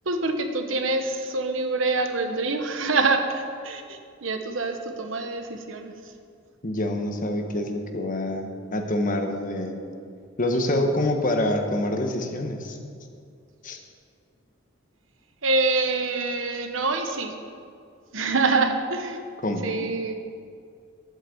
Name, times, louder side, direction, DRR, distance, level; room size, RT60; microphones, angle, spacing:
voice 1, 0.0-5.9 15.4-17.3 18.1-19.2 19.6-20.1, right 3 dB, 80° right, 6 dB, 1.2 m, -25 dB
voice 2, 6.6-9.8 10.4-12.8 13.6-13.8 19.4-19.7, left 1 dB, 45° left, 4 dB, 1.2 m, -26 dB
11.0 x 8.2 x 8.0 m, 2.3 s
head